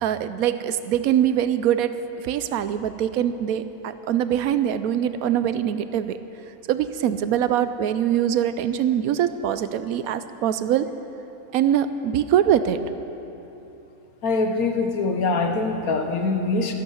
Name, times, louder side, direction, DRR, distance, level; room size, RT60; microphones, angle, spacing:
voice 1, 0.0-6.2 6.7-10.9 11.5-12.8, right 10 dB, 80° right, 12 dB, 1.1 m, -23 dB
voice 2, 14.2-16.7, left 3 dB, 85° left, 5 dB, 1.5 m, -23 dB
13.0 x 12.5 x 5.6 m, 2.9 s
omnidirectional pair, 1.5 m